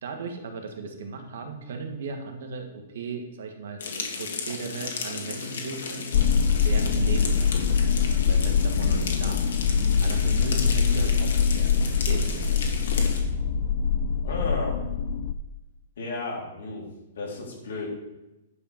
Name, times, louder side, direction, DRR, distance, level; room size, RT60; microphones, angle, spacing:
voice 1, 0.0-6.3 6.6-7.7 8.2-9.4 10.0-12.6, right 4 dB, 60° right, 5 dB, 1.4 m, -37 dB
sound 1, 3.8-13.2, left 5 dB, 85° left, 1.8 m, -34 dB
sound 2, 6.1-15.3, left 6 dB, 40° left, 0.4 m, -23 dB
voice 2, 14.2-14.8 16.0-16.9 17.2-17.9, left 3 dB, 65° left, -3 dB, 3.7 m, -33 dB
10.0 x 5.0 x 5.7 m, 0.98 s
hypercardioid pair, 180°, 0 cm